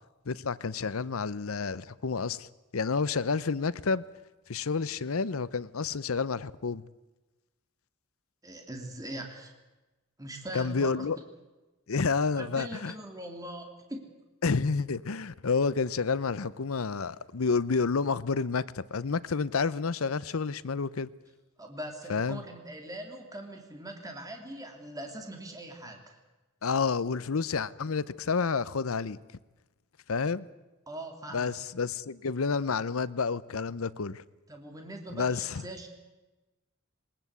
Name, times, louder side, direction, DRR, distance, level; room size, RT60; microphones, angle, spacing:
voice 1, 0.3-2.5 2.7-4.0 4.5-6.8 10.5-11.2 11.9-12.9 14.4-21.1 22.1-22.4 26.6-29.2 30.1-30.5 31.3-34.2 35.1-35.6, left 4 dB, 85° left, 0.7 m, -29 dB
voice 2, 8.4-9.5 10.2-11.1 12.3-14.1 21.6-26.0 30.9-31.5 34.5-35.9, right 1 dB, 15° right, 2.9 m, -41 dB
21.0 x 20.0 x 8.2 m
head